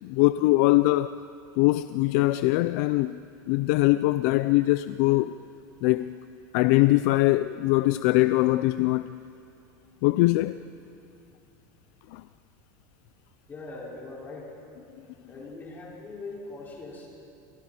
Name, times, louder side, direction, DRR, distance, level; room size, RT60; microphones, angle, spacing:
voice 1, 0.0-1.2 1.6-3.2 3.5-5.4 5.8-6.1 6.5-9.2 10.0-10.6 12.1-12.2, left 19 dB, 55° left, 0.5 m, -22 dB
voice 2, 13.5-14.5 15.2-17.1, left 3 dB, 20° left, 5.4 m, -41 dB
29.5 x 26.0 x 4.4 m
supercardioid pair, 165°, 10 cm